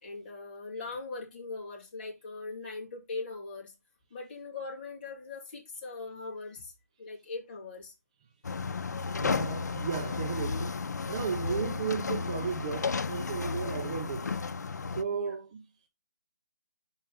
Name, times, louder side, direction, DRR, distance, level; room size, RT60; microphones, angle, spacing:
voice 1, 0.0-3.7 4.1-6.7 7.0-7.9 15.1-15.3, left 3 dB, 30° left, 2.3 m, -40 dB
sound 1, 8.4-15.0, left 4 dB, 85° left, 0.7 m, -33 dB
voice 2, 9.2-10.8 11.1-14.4 15.0-15.6, right 6 dB, 25° right, 0.5 m, -35 dB
5.6 x 4.4 x 5.3 m
hypercardioid pair, 170°, 9 cm